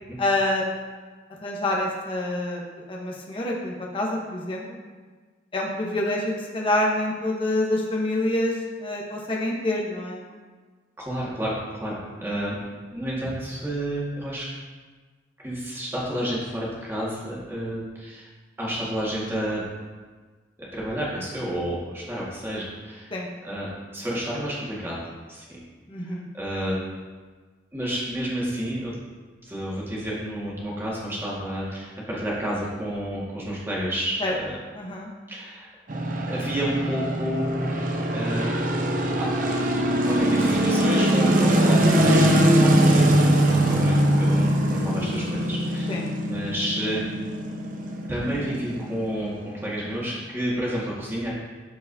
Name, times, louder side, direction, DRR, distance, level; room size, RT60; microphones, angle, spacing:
voice 1, 0.2-0.7 1.4-2.6 2.9-4.8 5.5-8.5 8.8-10.2 12.1-12.2 23.1-23.3 25.9-26.3 34.2-34.3 34.7-35.1 45.9-46.0, left 1 dB, 30° left, -2 dB, 0.9 m, -26 dB
voice 2, 11.0-12.6 12.9-14.5 15.4-18.3 18.6-19.6 20.7-23.1 23.4-25.0 25.3-25.6 26.0-26.8 27.7-28.9 29.4-34.6 35.3-35.7 36.3-37.7 38.1-38.5 38.8-39.3 40.1-43.1 43.4-47.0 48.1-51.4, equal, 10° right, -6 dB, 1.7 m, -30 dB
sound 1, 35.9-50.1, right 1 dB, 45° right, 0.7 m, -22 dB
13.0 x 4.6 x 2.7 m, 1.4 s
head